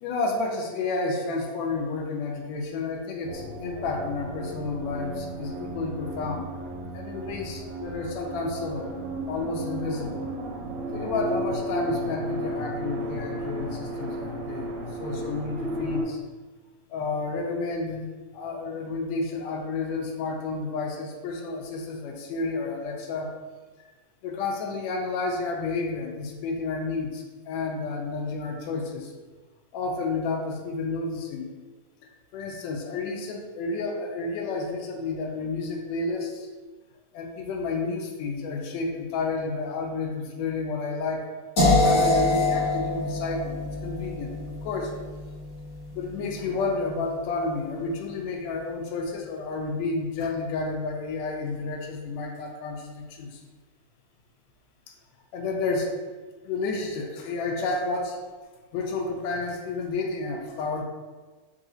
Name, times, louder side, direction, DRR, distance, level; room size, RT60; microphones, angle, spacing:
voice 1, 0.0-6.5 6.9-8.9 9.3-10.3 10.9-14.7 15.0-16.2 16.9-23.3 24.2-29.1 29.7-31.5 32.3-36.5 37.1-41.2 41.8-45.0 45.9-53.4 55.3-55.9 56.4-58.2 58.7-60.8, left 3 dB, 80° left, 1 dB, 1.6 m, -31 dB
sound 1, 3.2-16.0, right 1 dB, 75° right, 2.0 m, -34 dB
sound 2, 41.6-47.5, left 2 dB, 40° left, 1.3 m, -26 dB
4.7 x 2.5 x 3.8 m, 1.3 s
omnidirectional pair, 3.6 m